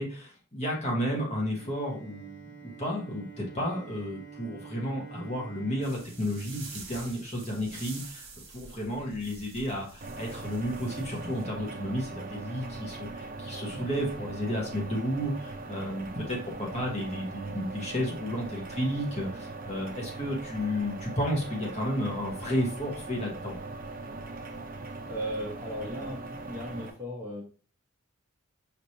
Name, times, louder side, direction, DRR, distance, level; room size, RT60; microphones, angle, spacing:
voice 1, 0.0-8.3 8.5-23.6, equal, 30° left, -2 dB, 1.4 m, -32 dB
Bowed string instrument, 1.5-7.7, right 5 dB, 55° left, 1.3 m, -48 dB
sound 1, 5.8-11.4, right 3 dB, 60° right, 1.4 m, -47 dB
sound 2, 10.0-26.9, right 3 dB, 40° right, 0.6 m, -40 dB
voice 2, 25.1-26.2 26.4-27.4, equal, 10° right, -3 dB, 1.1 m, -36 dB
5.1 x 3.2 x 2.8 m, 0.37 s
head